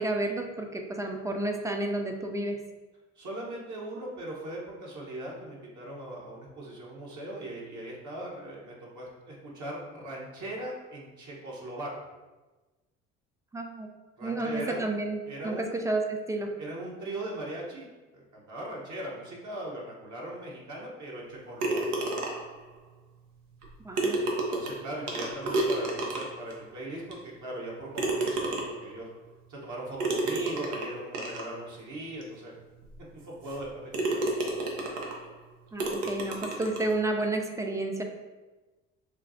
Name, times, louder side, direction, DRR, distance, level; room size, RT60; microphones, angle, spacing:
voice 1, 0.0-2.6 13.5-13.9 14.2-16.5 23.8-24.2 35.7-38.0, right 2 dB, 10° right, 3 dB, 0.4 m, -31 dB
voice 2, 3.2-11.9 14.2-14.9 15.3-15.6 16.6-17.9 18.1-21.8 24.2-29.1 29.5-32.5 33.1-34.2, right 1 dB, 50° right, -4 dB, 1.0 m, -39 dB
sound 1, 21.6-22.6 23.6-23.7 24.0-26.5 27.1-27.2 28.0-28.9 30.0-31.5 32.2-32.3 32.8-32.9 33.5-33.6 33.9-35.2 35.8-36.9, right 2 dB, 85° right, 0.7 m, -30 dB
4.3 x 2.3 x 2.6 m, 1.2 s
hypercardioid pair, 55°, 37 cm